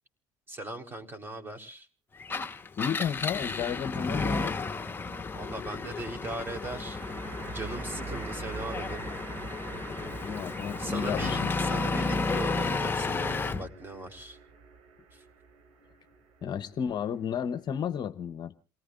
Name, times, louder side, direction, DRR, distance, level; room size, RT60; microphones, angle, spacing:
voice 1, 0.5-1.9 5.3-7.0 7.5-9.1 10.5-14.4 15.1-15.2, right 2 dB, 20° right, 4.1 m, -39 dB
Engine, 2.2-13.7, left 3 dB, 20° left, 1.2 m, -32 dB
voice 2, 2.8-4.6 10.2-11.5 16.4-18.5, left 8 dB, 45° left, 1.0 m, -32 dB
sound 1, 3.3-3.9 6.4-17.8, right 5 dB, 65° right, 4.4 m, -46 dB
28.5 x 18.5 x 2.5 m
supercardioid pair, 80°, 10 cm